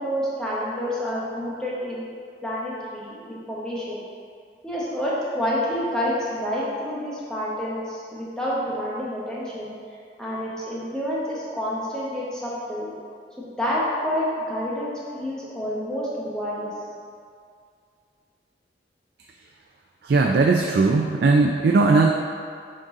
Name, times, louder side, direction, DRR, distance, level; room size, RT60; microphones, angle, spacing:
voice 1, 0.0-2.0 2.4-4.0 4.6-9.7 10.2-12.9 13.4-16.7, equal, 5° left, -7 dB, 1.0 m, -28 dB
voice 2, 20.0-22.1, right 3 dB, 60° right, 1 dB, 0.3 m, -18 dB
6.4 x 3.9 x 3.7 m, 2.2 s
head